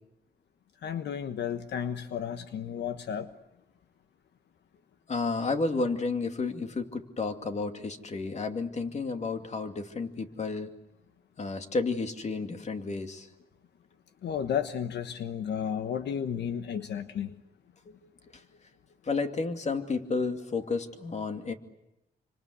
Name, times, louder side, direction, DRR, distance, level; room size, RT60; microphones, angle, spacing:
voice 1, 0.8-3.3 14.2-17.3, left 8 dB, 80° left, 9 dB, 1.3 m, -33 dB
voice 2, 5.1-10.7 11.4-13.3 16.7-16.8 17.9-18.0 19.1-21.5, left 4 dB, 40° left, 6 dB, 2.5 m, -31 dB
27.5 x 25.5 x 8.2 m, 0.86 s
cardioid pair, 100°, 17 cm